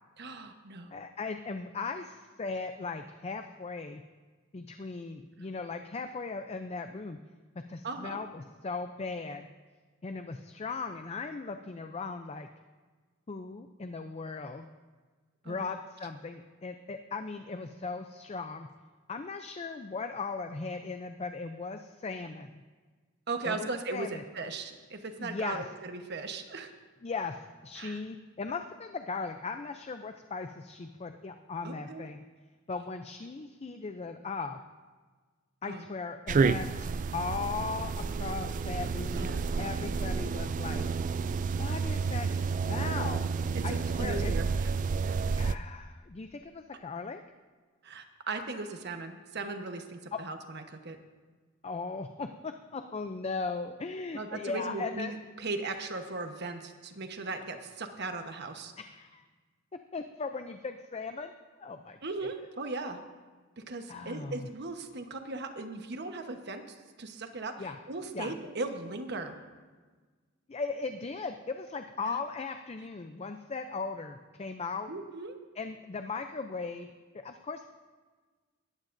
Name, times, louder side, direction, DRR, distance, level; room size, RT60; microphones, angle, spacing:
voice 1, 0.2-0.9 7.8-8.2 15.4-15.7 23.3-26.7 27.8-28.0 31.6-32.1 35.6-35.8 39.2-39.4 43.7-44.7 45.0-45.3 47.8-51.0 54.1-58.7 62.0-63.0 63.6-69.4 72.0-72.2 74.9-75.4, right 3 dB, 55° right, 6 dB, 1.1 m, -38 dB
voice 2, 0.9-4.0 4.5-7.2 7.7-9.5 10.0-12.5 13.3-14.7 15.5-18.7 19.1-22.6 23.4-24.2 25.2-25.6 27.0-32.2 32.7-34.6 35.6-40.9 41.6-43.3 43.6-44.3 45.4-47.2 50.1-50.2 51.6-55.1 58.8-59.2 59.9-61.3 61.6-62.0 63.9-64.5 67.6-67.8 68.1-68.3 70.5-74.9 75.6-76.9 77.1-77.7, left 4 dB, 30° left, 7 dB, 0.5 m, -38 dB
sound 1, 36.3-45.5, right 5 dB, 40° right, 0.3 m, -30 dB
20.5 x 14.5 x 2.6 m, 1.4 s
head